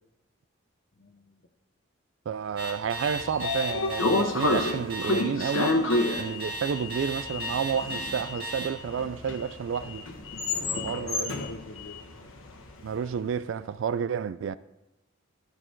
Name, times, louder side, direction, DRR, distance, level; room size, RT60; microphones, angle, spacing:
voice 1, 1.0-1.4 10.6-12.3, left 2 dB, 55° left, 0.9 m, -43 dB
voice 2, 2.3-5.8 6.2-10.1 10.6-11.3 12.8-14.6, right 7 dB, 65° right, 0.3 m, -30 dB
Alarm, 2.6-8.7, right 1 dB, 50° right, 2.0 m, -35 dB
Sliding door, 2.8-13.0, left 2 dB, 80° left, 1.4 m, -30 dB
13.5 x 6.4 x 4.6 m
head